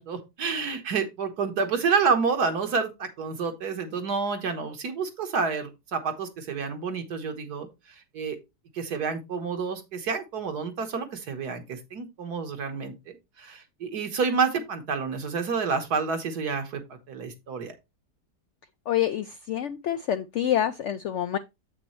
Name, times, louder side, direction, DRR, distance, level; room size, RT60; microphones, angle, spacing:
voice 1, 0.0-7.7 8.1-8.4 8.7-12.9 13.4-16.8 17.1-17.7, right 5 dB, 70° right, 1.8 m, -29 dB
voice 2, 18.9-21.4, left 11 dB, 75° left, 0.6 m, -27 dB
8.0 x 6.0 x 3.1 m
omnidirectional pair, 1.8 m